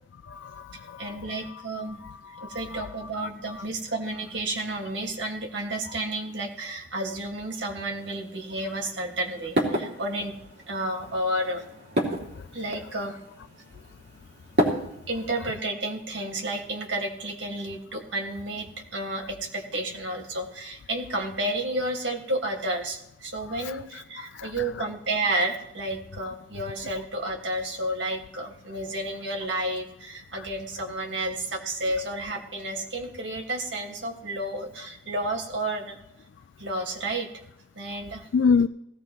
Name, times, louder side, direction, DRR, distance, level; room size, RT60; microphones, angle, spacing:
voice 1, 0.3-1.1 2.0-2.9 23.6-23.7 24.4-24.5 38.3-38.7, left 5 dB, 80° left, 10 dB, 0.4 m, -26 dB
voice 2, 1.0-2.0 2.5-10.3 10.7-11.7 12.5-13.2 15.1-36.0 36.6-37.3 37.8-38.2, right 1 dB, 80° right, 2 dB, 1.8 m, -31 dB
sound 1, 8.0-15.3, right 1 dB, 60° right, 2.6 m, -32 dB
17.0 x 16.0 x 3.0 m, 0.81 s
head